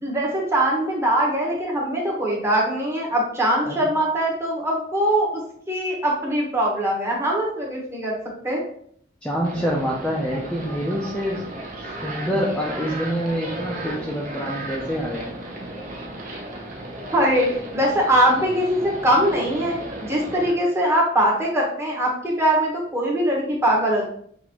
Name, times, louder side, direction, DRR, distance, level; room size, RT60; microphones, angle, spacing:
voice 1, 0.0-5.3 5.7-8.1 8.4-8.6 17.1-17.5 17.7-24.1, right 1 dB, 15° right, -3 dB, 1.1 m, -22 dB
voice 2, 9.2-11.4 11.8-15.3, equal, 5° left, -4 dB, 0.5 m, -26 dB
sound 1, 9.4-20.5, right 1 dB, 45° right, 0.8 m, -35 dB
5.9 x 2.5 x 2.9 m, 0.64 s
head